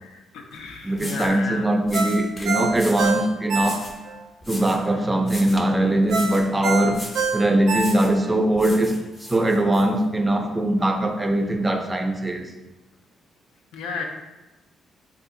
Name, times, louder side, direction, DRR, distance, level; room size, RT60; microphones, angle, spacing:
voice 1, 0.0-1.7 13.7-14.0, left 4 dB, 85° left, 0.4 m, -33 dB
sound 1, 0.5-0.6 0.9-1.4 1.9-3.2 3.6-4.0 4.4-4.9 5.2-5.7 6.1-6.5 6.9-7.3 7.7-8.2 8.6-9.9, left 1 dB, 30° left, 0.7 m, -38 dB
voice 2, 0.8-3.9 4.5-7.0 7.3-12.5, right 1 dB, 20° right, 0.4 m, -21 dB
Ringtone, 1.9-4.2 4.6-4.7 6.1-8.3 8.7-8.8, right 4 dB, 75° right, 0.5 m, -26 dB
2.7 x 2.4 x 3.6 m
cardioid pair, 90°, 0 cm